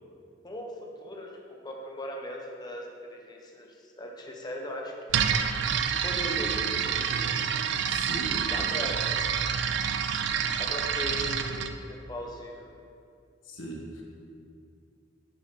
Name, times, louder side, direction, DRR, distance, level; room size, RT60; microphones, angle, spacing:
voice 1, 0.4-4.9 6.0-7.4 8.5-9.0 10.6-11.6 11.9-12.7, left 1 dB, 20° left, 0 dB, 0.7 m, -39 dB
sound 1, 5.1-11.7, right 7 dB, 65° right, 0.3 m, -28 dB
voice 2, 7.9-8.4 13.4-14.0, right 1 dB, 80° left, -2 dB, 1.1 m, -39 dB
6.0 x 3.8 x 5.5 m, 2.4 s
head